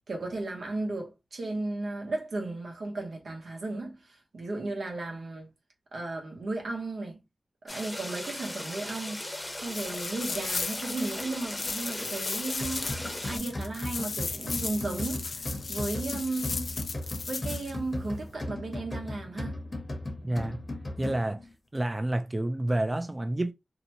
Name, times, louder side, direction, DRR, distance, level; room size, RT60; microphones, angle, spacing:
voice 1, 0.1-5.5 5.9-7.2 7.6-9.3 9.6-16.7 17.3-19.7, right 2 dB, 90° right, 0.8 m, -35 dB
sound 1, 7.7-13.4, left 1 dB, 20° left, 0.8 m, -38 dB
sound 2, 9.6-17.7, left 4 dB, 85° left, 0.3 m, -36 dB
sound 3, 12.6-21.5, left 1 dB, 45° left, 0.9 m, -37 dB
voice 2, 20.2-20.6 21.0-21.4 21.7-23.5, right 1 dB, 30° right, 0.4 m, -29 dB
2.7 x 2.1 x 2.7 m
wide cardioid pair, 65°, 0 cm